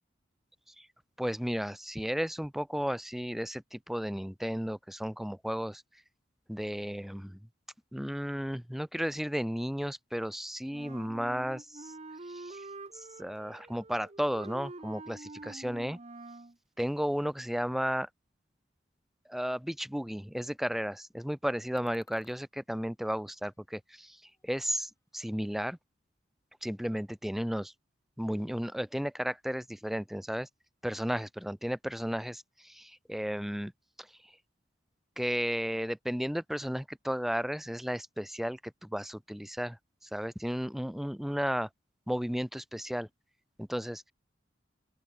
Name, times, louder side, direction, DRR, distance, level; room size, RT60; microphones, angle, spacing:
voice 1, 1.2-5.8 6.5-7.4 7.9-11.9 12.3-12.7 12.9-16.0 16.8-18.1 19.3-25.8 26.6-27.7 28.2-30.5 30.8-33.7 34.0-34.1 35.2-41.7 42.1-43.1 43.6-44.1, equal, ahead, 0.4 m, -34 dB
Wind instrument woodwind instrument, 10.7-16.6, right 2 dB, 35° right, 0.9 m, -46 dB
sound 1, 21.8-22.4 23.0-24.0 24.2-25.1, left 2 dB, 15° left, 3.9 m, -61 dB
open air
head